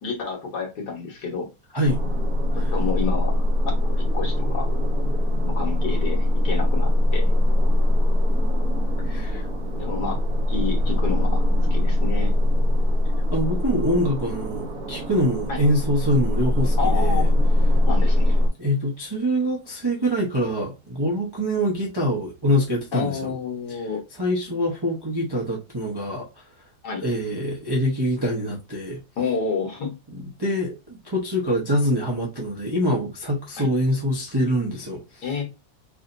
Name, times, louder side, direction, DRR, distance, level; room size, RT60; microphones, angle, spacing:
voice 1, 0.0-1.5 2.6-3.3 3.7-4.8 5.4-7.3 9.8-12.3 15.5-15.6 16.8-17.3 17.9-18.4 22.9-24.0 26.8-27.0 29.2-29.9 33.6-33.7 35.2-35.4, left 5 dB, 65° left, 1.9 m, -29 dB
sound 1, 1.8-18.5, left 1 dB, 60° right, 1.5 m, -21 dB
voice 2, 9.1-9.5 13.3-17.3 18.6-23.3 24.2-26.3 27.0-29.0 30.1-35.2, equal, 20° right, 0.7 m, -24 dB
4.9 x 2.7 x 2.6 m
omnidirectional pair, 2.0 m